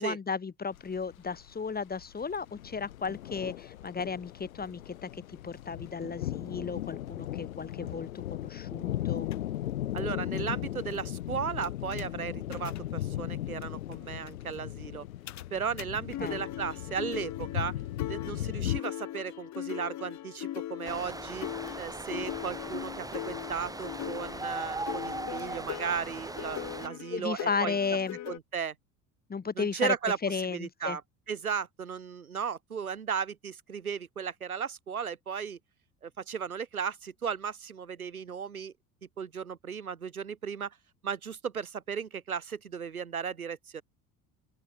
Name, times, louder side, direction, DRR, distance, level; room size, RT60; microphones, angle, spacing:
voice 1, 0.0-9.3 16.2-16.4 27.1-28.2 29.3-29.9 30.2-31.0, left 5 dB, 20° left, 2.4 m, -34 dB
sound 1, 0.7-18.8, left 13 dB, 70° left, 4.5 m, -37 dB
sound 2, 9.3-9.4 10.0-10.1 10.4-10.5 10.8-11.0 11.6-12.1 12.5-12.8 13.6-13.7 13.9-14.0 14.2-14.4 15.3-15.4 15.8-15.9 16.1-28.4, left 12 dB, 40° left, 2.0 m, -40 dB
voice 2, 9.9-15.1 15.5-17.7 18.1-21.5 21.8-28.0 28.3-28.8 29.6-31.0 31.3-35.6 36.0-38.7 39.2-40.8 41.0-43.8, right 7 dB, 80° right, 3.6 m, -35 dB
sound 3, 20.8-26.9, right 2 dB, 10° right, 2.8 m, -39 dB
open air
figure-of-eight pair, 60°, 42 cm